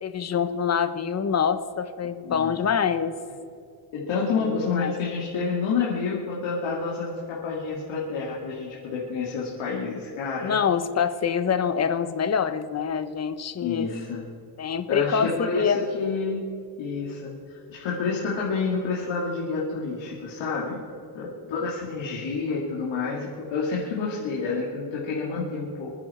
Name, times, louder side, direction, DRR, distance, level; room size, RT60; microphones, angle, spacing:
voice 1, 0.0-3.1 4.3-4.9 10.4-13.9 14.6-15.8 21.4-21.5, left 7 dB, 30° left, 10 dB, 1.0 m, -25 dB
voice 2, 2.2-2.6 3.9-10.6 13.6-14.2 14.9-16.4 16.8-20.8 21.1-25.9, left 4 dB, 65° left, -4 dB, 2.6 m, -29 dB
28.0 x 9.7 x 4.4 m, 2.4 s
cardioid pair, 125°, 49 cm